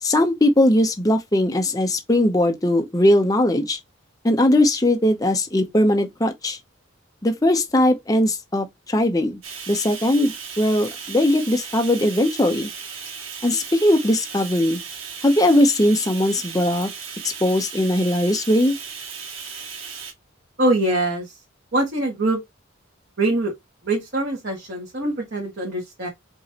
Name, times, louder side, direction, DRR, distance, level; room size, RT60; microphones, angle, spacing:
voice 1, 0.0-3.8 4.2-6.6 7.2-9.4 9.7-12.7 13.4-14.8 15.2-16.9 17.2-18.7, left 1 dB, 20° left, 0.7 m, -19 dB
Bathtub (filling or washing), 9.4-20.1, right 6 dB, 85° right, 1.8 m, -36 dB
voice 2, 20.6-21.4 21.7-22.4 23.2-23.5 23.8-26.1, right 2 dB, 60° right, 1.7 m, -23 dB
5.3 x 3.1 x 2.8 m
head